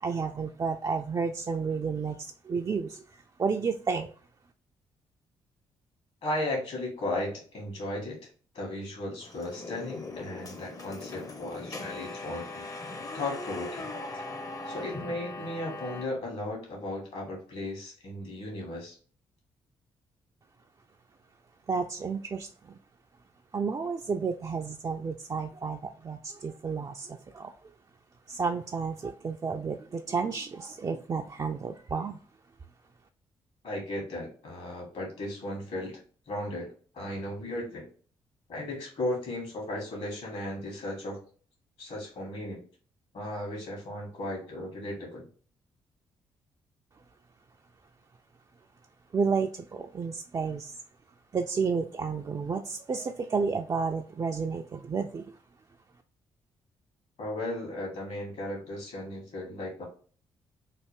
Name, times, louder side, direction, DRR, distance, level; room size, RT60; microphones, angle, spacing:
voice 1, 0.0-4.1 21.7-22.8 23.5-27.5 28.3-32.2 49.1-50.8 51.3-55.4, right 5 dB, 30° right, 3 dB, 0.3 m, -31 dB
voice 2, 6.2-8.3 8.5-12.7 13.1-13.9 14.1-14.3 14.6-19.0 33.6-36.0 36.3-36.7 36.9-37.9 38.5-41.2 41.8-42.6 43.1-45.3 57.2-59.8, left 1 dB, 60° left, -1 dB, 1.7 m, -36 dB
sound 1, 9.2-16.1, left 2 dB, 30° left, 0.6 m, -40 dB
3.3 x 2.4 x 3.3 m, 0.42 s
hypercardioid pair, 40°, 12 cm